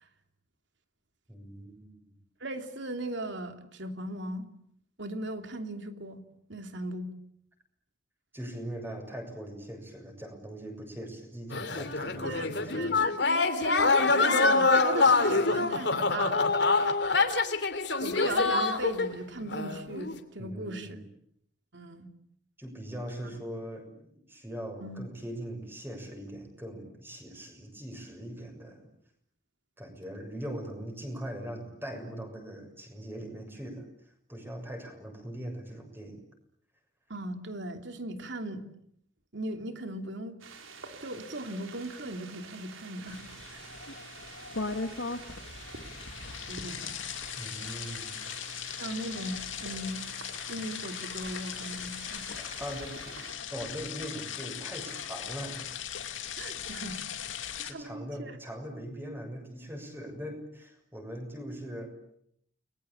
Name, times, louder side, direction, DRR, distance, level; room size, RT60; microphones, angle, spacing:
voice 1, 1.3-2.1 8.3-13.0 20.4-21.0 22.6-23.9 24.3-28.8 29.8-33.9 34.3-36.2 47.4-48.2 52.4-55.7 57.4-61.9, equal, 10° right, 4 dB, 6.9 m, -41 dB
voice 2, 2.4-4.5 5.0-6.2 6.5-7.1 12.0-13.1 13.6-16.5 18.0-21.0 21.7-22.1 24.8-25.0 37.1-38.7 39.3-40.4 41.0-43.2 43.5-43.7 46.5-47.0 48.8-50.0 50.5-52.4 56.4-57.3 57.7-58.4, right 1 dB, 65° right, 6 dB, 3.0 m, -38 dB
sound 1, 11.5-19.2 19.5-20.1, left 3 dB, 60° left, 2.8 m, -25 dB
sound 2, 40.4-53.3, right 5 dB, 85° right, 4.7 m, -48 dB
sound 3, 43.1-57.7, left 7 dB, 80° left, 2.5 m, -39 dB
30.0 x 22.0 x 8.8 m, 0.70 s
head